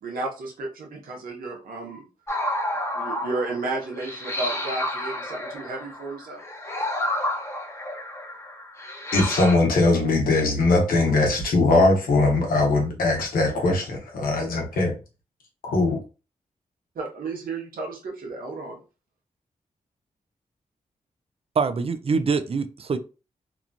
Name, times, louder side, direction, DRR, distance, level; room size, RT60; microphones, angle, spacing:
voice 1, 0.0-2.0 2.9-6.4 16.9-18.8, right 3 dB, 85° right, 0.8 m, -32 dB
sound 1, 2.3-9.6, left 1 dB, 20° left, 0.8 m, -30 dB
voice 2, 9.1-14.9 15.6-16.0, left 2 dB, 90° left, 0.9 m, -20 dB
voice 3, 21.6-23.0, right 5 dB, 45° right, 0.4 m, -24 dB
2.9 x 2.3 x 2.5 m
cardioid pair, 50°, 14 cm